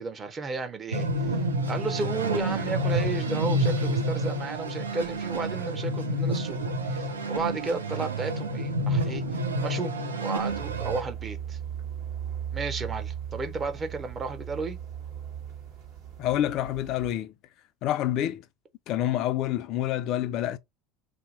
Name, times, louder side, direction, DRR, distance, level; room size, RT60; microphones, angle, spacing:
voice 1, 0.0-1.4 1.7-6.6 6.9-9.2 9.6-9.9 10.2-11.6 12.5-14.8, right 3 dB, 30° right, 0.8 m, -33 dB
sound 1, 0.9-11.0, right 1 dB, 85° right, 0.5 m, -29 dB
sound 2, 10.5-17.2, right 9 dB, 60° right, 1.4 m, -38 dB
voice 2, 16.2-17.3 17.8-18.4 18.9-20.6, left 12 dB, 55° left, 0.3 m, -27 dB
2.7 x 2.0 x 4.0 m
figure-of-eight pair, 70°, 0 cm